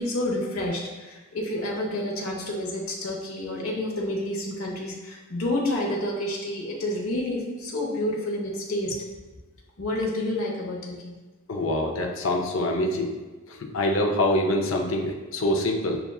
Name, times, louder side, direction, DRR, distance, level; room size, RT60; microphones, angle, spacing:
voice 1, 0.0-8.9 9.8-11.1, left 1 dB, 90° left, -2 dB, 0.8 m, -29 dB
voice 2, 11.5-13.1 13.5-16.0, left 1 dB, 65° left, 2 dB, 0.5 m, -25 dB
6.7 x 2.4 x 2.3 m, 1.2 s
head